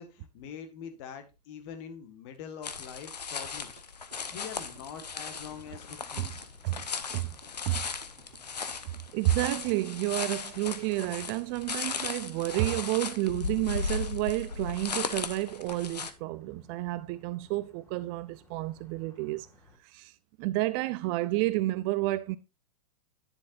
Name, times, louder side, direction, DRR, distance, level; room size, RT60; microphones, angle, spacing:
voice 1, 0.0-3.7 4.3-6.3, left 7 dB, 45° left, 1.8 m, -44 dB
sound 1, 2.6-16.1, left 5 dB, 80° left, 1.0 m, -37 dB
sound 2, 3.8-9.1, right 9 dB, 65° right, 1.5 m, -57 dB
sound 3, 4.1-19.8, left 2 dB, 15° left, 3.2 m, -60 dB
voice 2, 9.1-19.5 19.8-20.1 20.4-22.4, right 18 dB, 40° right, 0.5 m, -30 dB
10.0 x 7.3 x 2.6 m
figure-of-eight pair, 105°, 20 cm